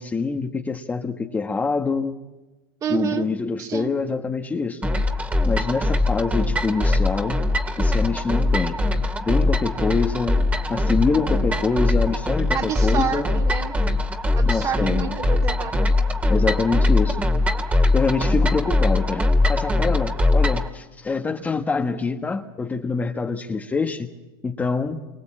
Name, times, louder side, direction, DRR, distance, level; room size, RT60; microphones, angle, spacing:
voice 1, 0.0-2.1 2.9-4.9 5.5-7.4 7.8-8.8 9.2-10.4 10.7-13.3 14.5-15.2 16.3-17.3 17.9-24.1 24.4-25.0, left 4 dB, 15° left, 4 dB, 1.3 m, -25 dB
voice 2, 2.8-3.3 3.6-3.9 12.5-13.7 14.3-15.9, right 8 dB, 30° right, 3 dB, 2.5 m, -28 dB
sound 1, 4.8-20.7, left 2 dB, 10° right, 2.1 m, -21 dB
27.5 x 24.5 x 8.8 m, 1.1 s
supercardioid pair, 135°, 12 cm